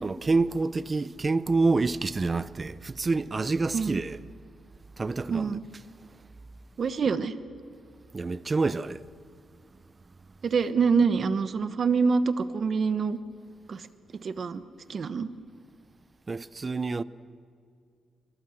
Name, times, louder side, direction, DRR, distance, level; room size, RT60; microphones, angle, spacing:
voice 1, 0.0-4.2 5.0-5.8 6.1-6.2 8.1-9.0 16.3-17.0, right 3 dB, 20° right, 0.6 m, -27 dB
voice 2, 5.3-5.6 6.8-7.3 10.4-13.2 13.7-13.8 14.2-14.6 14.9-15.3, right 5 dB, 40° right, 1.1 m, -25 dB
26.5 x 23.0 x 7.8 m
wide cardioid pair, 170°, 0 cm